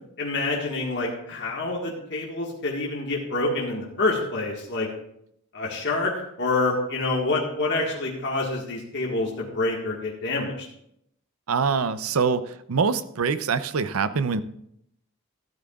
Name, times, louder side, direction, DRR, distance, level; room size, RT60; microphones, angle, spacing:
voice 1, 0.2-4.9 5.5-6.1 6.4-10.7, left 2 dB, 55° left, -2 dB, 1.7 m, -27 dB
voice 2, 11.5-14.4, right 5 dB, 75° right, 13 dB, 0.6 m, -24 dB
13.5 x 11.5 x 2.4 m, 0.74 s
head